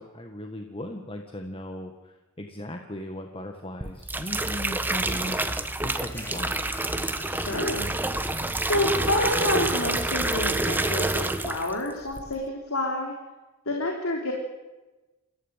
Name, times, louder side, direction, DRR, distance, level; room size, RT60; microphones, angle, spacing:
voice 1, 0.0-6.6, left 1 dB, 25° left, 4 dB, 1.7 m, -38 dB
sound 1, 3.8-11.8 12.1-12.5, right 2 dB, 10° right, 1.2 m, -28 dB
sound 2, 5.0-7.9, left 1 dB, 10° left, 3.3 m, -46 dB
voice 2, 7.3-7.9 8.6-13.1 13.7-14.3, left 1 dB, 85° left, 1 dB, 3.7 m, -28 dB
28.0 x 15.5 x 9.1 m, 1.1 s
head